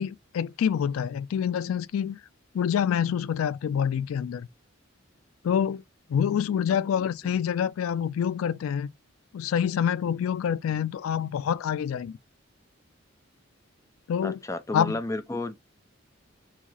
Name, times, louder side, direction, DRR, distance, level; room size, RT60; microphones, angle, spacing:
voice 1, 0.0-2.2 2.5-4.5 5.4-5.8 6.1-8.9 9.3-12.2 14.1-14.4 14.7-15.0, left 8 dB, 90° left, 0.3 m, -27 dB
voice 2, 14.2-15.6, left 2 dB, 15° left, 0.5 m, -32 dB
4.8 x 2.1 x 4.0 m
head